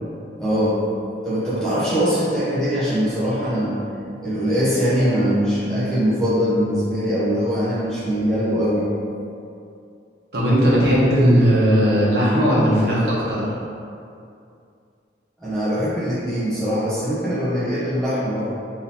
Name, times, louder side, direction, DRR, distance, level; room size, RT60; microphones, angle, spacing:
voice 1, 0.4-0.8 1.2-3.8 4.2-8.9 15.4-18.5, equal, 5° left, -11 dB, 0.7 m, -22 dB
voice 2, 10.3-13.5, equal, 60° right, -8 dB, 1.0 m, -17 dB
3.7 x 2.7 x 2.8 m, 2.5 s
head